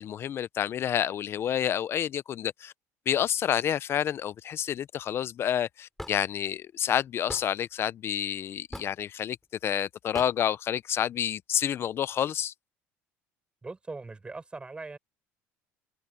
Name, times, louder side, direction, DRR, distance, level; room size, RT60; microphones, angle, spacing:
voice 1, 0.0-2.7 3.1-9.4 9.6-12.5, left 10 dB, 45° left, 0.7 m, -29 dB
Hammer / Wood, 6.0-6.2 7.3-7.5 8.7-9.0 10.1-10.3, left 1 dB, 5° left, 3.1 m, -38 dB
voice 2, 13.6-15.0, right 3 dB, 15° right, 7.1 m, -40 dB
supercardioid pair, 100°, 6 cm